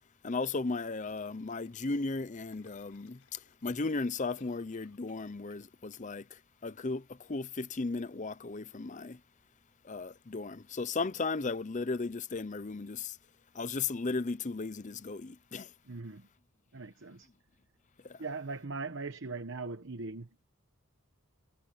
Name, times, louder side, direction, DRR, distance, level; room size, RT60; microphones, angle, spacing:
voice 1, 0.2-9.2 9.8-13.2 13.5-15.7 18.0-18.2, left 3 dB, 35° left, 0.6 m, -36 dB
sound 1, 1.0-3.9 4.4-5.7 5.9-6.1, left 4 dB, 90° left, 5.8 m, -66 dB
voice 2, 15.9-16.3 16.7-17.3 18.2-20.4, right 3 dB, 55° right, 1.0 m, -40 dB
head